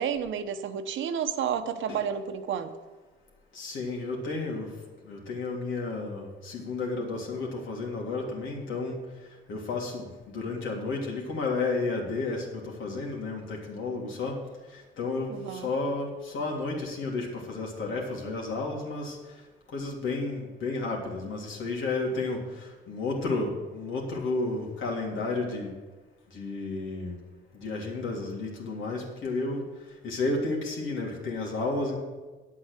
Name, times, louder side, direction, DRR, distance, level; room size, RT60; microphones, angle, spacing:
voice 1, 0.0-2.7 15.3-15.7, right 8 dB, 75° right, 9 dB, 1.0 m, -31 dB
voice 2, 3.5-4.7 5.0-9.0 9.5-14.4 14.7-19.2 19.7-25.7 26.3-27.2 27.5-29.6 30.0-32.0, left 3 dB, 75° left, -1 dB, 3.2 m, -32 dB
10.0 x 8.5 x 6.6 m, 1.3 s
cardioid pair, 90°, 20 cm